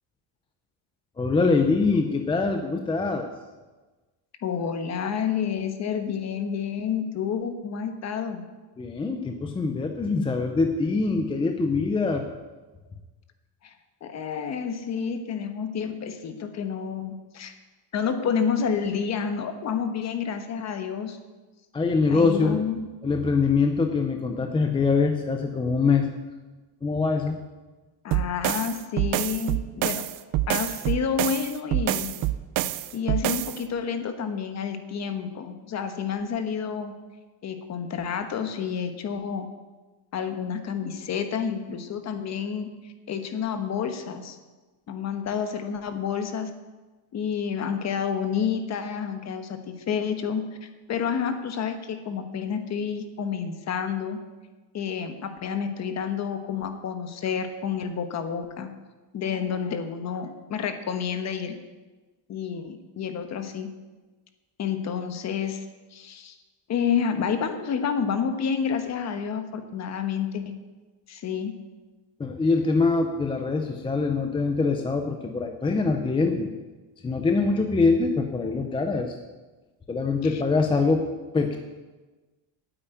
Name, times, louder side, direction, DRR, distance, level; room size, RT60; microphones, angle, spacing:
voice 1, 1.2-3.3 8.8-12.2 21.7-22.6 23.0-26.1 26.8-27.4 72.2-76.5 77.0-79.1 79.9-81.1 81.3-81.6, left 4 dB, 10° left, 5 dB, 0.5 m, -24 dB
voice 2, 4.4-8.4 13.6-13.7 14.0-17.5 17.9-21.2 22.1-22.9 28.0-30.1 30.5-32.1 32.9-36.9 37.4-39.5 40.1-44.4 44.9-46.6 47.1-54.2 54.7-58.7 59.1-61.6 62.3-63.7 64.6-65.7 65.9-66.4 66.7-70.5 71.1-71.5 80.2-80.4, left 7 dB, 35° left, 8 dB, 1.2 m, -29 dB
sound 1, 28.1-33.6, right 14 dB, 45° right, 0.5 m, -27 dB
9.0 x 8.7 x 9.0 m, 1.2 s
cardioid pair, 170°, 48 cm